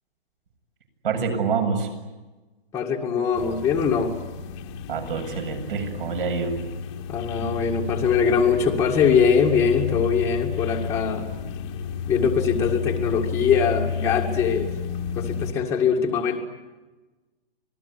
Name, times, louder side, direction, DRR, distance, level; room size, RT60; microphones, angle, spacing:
voice 1, 1.0-1.9 4.9-6.6, right 5 dB, 55° right, 4 dB, 8.0 m, -26 dB
voice 2, 2.7-4.1 7.1-11.3 12.1-14.7 15.2-16.4, left 6 dB, 10° left, -2 dB, 2.0 m, -22 dB
sound 1, 3.4-15.5, left 7 dB, 25° left, 1.8 m, -31 dB
27.5 x 20.0 x 9.7 m, 1.2 s
hypercardioid pair, 165°, 32 cm